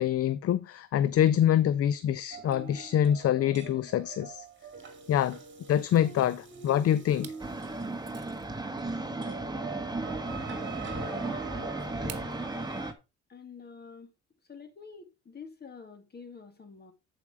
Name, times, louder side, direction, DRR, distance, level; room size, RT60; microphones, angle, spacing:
voice 1, 0.0-4.5 5.1-5.4 5.7-7.3, left 10 dB, 50° left, 0.5 m, -25 dB
sound 1, 2.3-12.9, right 6 dB, 40° right, 2.1 m, -44 dB
sound 2, 7.2-7.5 8.0-8.5 10.0-10.1 12.1-12.4, right 9 dB, 55° right, 1.2 m, -46 dB
sound 3, 7.4-12.9, right 2 dB, 15° right, 1.3 m, -35 dB
voice 2, 11.4-12.4 13.3-14.1 14.5-16.9, left 5 dB, 35° left, 2.2 m, -48 dB
8.3 x 5.0 x 4.8 m
cardioid pair, 90°, 30 cm